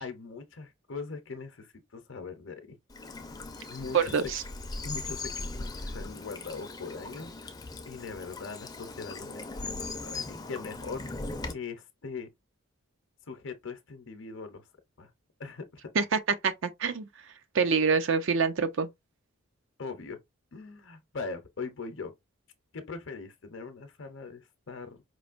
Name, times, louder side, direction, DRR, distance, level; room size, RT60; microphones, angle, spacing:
voice 1, 0.0-2.8 3.7-4.3 4.8-7.5 7.8-11.0 11.5-12.3 13.3-14.6 15.0-15.1 15.4-15.7 19.8-20.2 20.5-22.1 22.7-25.0, left 4 dB, 55° left, 0.7 m, -41 dB
Bird vocalization bird call bird song / Stream, 2.9-11.5, left 3 dB, 20° left, 0.5 m, -39 dB
voice 2, 3.9-4.4 16.0-17.1 17.5-18.9, right 5 dB, 60° right, 0.5 m, -26 dB
5.0 x 3.2 x 2.5 m
head